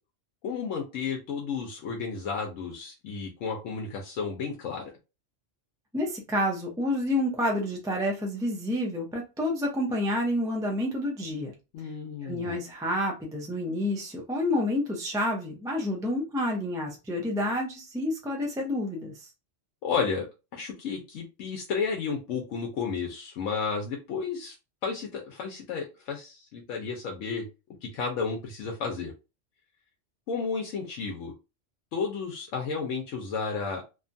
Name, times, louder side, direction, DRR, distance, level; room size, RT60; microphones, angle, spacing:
voice 1, 0.4-4.8 11.7-12.6 19.8-20.3 20.5-24.5 24.8-27.5 27.8-29.1 30.3-31.3 31.9-33.8, left 5 dB, 90° left, 1.0 m, -32 dB
voice 2, 5.9-11.5 12.2-19.1, left 1 dB, 5° right, 0.3 m, -29 dB
2.8 x 2.3 x 2.6 m
omnidirectional pair, 1.3 m